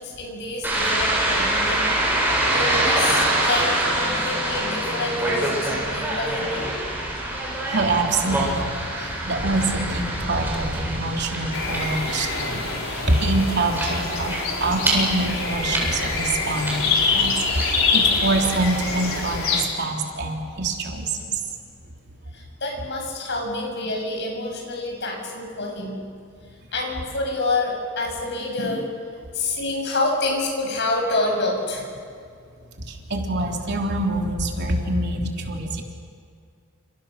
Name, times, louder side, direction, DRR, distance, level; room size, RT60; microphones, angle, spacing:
voice 1, 0.0-1.9 2.5-6.9 7.3-7.4 22.3-26.0 26.7-28.9 29.3-31.9, left 2 dB, 55° left, 1 dB, 7.7 m, -27 dB
sound 1, 0.6-19.2, right 1 dB, 10° right, 7.9 m, -26 dB
voice 2, 7.7-14.3 14.6-21.4 32.9-35.8, right 2 dB, 55° right, 1 dB, 3.6 m, -25 dB
sound 2, 11.5-19.6, left 4 dB, 70° left, 5.1 m, -25 dB
30.0 x 29.0 x 6.7 m, 2.3 s
head